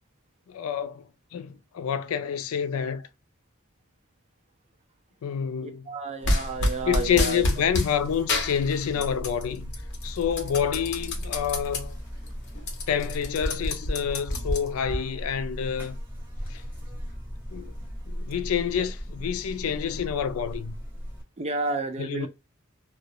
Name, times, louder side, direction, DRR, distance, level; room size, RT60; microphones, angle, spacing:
voice 1, 0.5-3.1 5.2-5.9 6.8-9.8 10.0-12.0 12.9-16.0 16.5-16.6 17.5-17.8 18.1-20.7 22.0-22.3, left 8 dB, 75° left, 0.3 m, -28 dB
voice 2, 5.6-7.4 21.4-22.3, right 3 dB, 30° right, 0.4 m, -31 dB
sound 1, 6.2-7.9 8.3-9.4 9.7-11.8 12.2-12.3 12.6-15.0, left 2 dB, 55° left, 0.7 m, -28 dB
Buzz, 6.2-21.2, equal, 10° right, 1.0 m, -38 dB
2.3 x 2.0 x 2.7 m
head